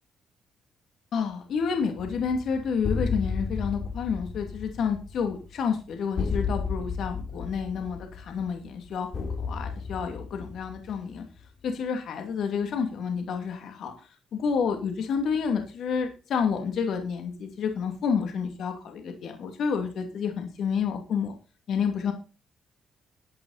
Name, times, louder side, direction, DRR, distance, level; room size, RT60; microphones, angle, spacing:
voice 1, 1.1-9.1 9.4-11.2 11.6-21.3 21.7-22.1, left 6 dB, 70° left, 4 dB, 2.6 m, -29 dB
sound 1, 2.0-11.4, left 5 dB, 45° left, 3.4 m, -33 dB
12.5 x 8.7 x 4.2 m, 0.33 s
cardioid pair, 90°, 0 cm